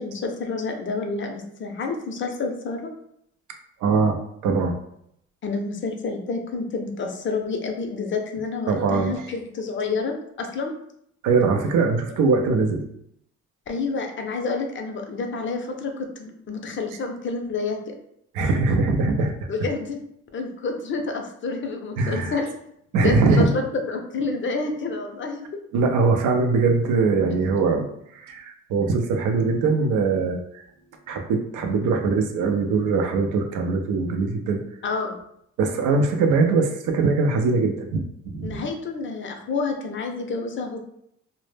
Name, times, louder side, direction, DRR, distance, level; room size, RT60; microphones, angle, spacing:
voice 1, 0.0-2.9 5.4-10.7 13.7-17.9 19.5-20.0 20.3-22.5 23.0-23.6 23.9-25.5 34.8-35.2 38.4-40.8, left 4 dB, 40° left, 4 dB, 0.5 m, -29 dB
voice 2, 3.8-4.8 8.7-9.2 11.2-12.8 18.3-19.5 22.0-22.4 22.9-23.5 25.7-30.6 31.1-34.6 35.6-38.7, right 4 dB, 90° right, 4 dB, 0.5 m, -22 dB
2.0 x 2.0 x 3.1 m, 0.73 s
cardioid pair, 90°, 30 cm